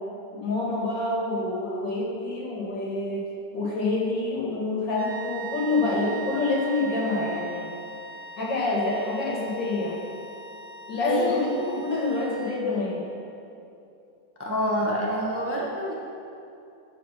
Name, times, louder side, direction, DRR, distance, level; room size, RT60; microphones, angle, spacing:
voice 1, 0.4-3.2 3.5-7.7 8.4-10.0 10.9-13.0, left 2 dB, 70° left, -4 dB, 2.6 m, -27 dB
sound 1, 5.0-12.8, right 2 dB, 75° right, 2.0 m, -40 dB
voice 2, 11.0-11.3 14.4-15.9, equal, 10° right, -3 dB, 0.9 m, -26 dB
13.5 x 4.6 x 6.0 m, 2.7 s
omnidirectional pair, 2.0 m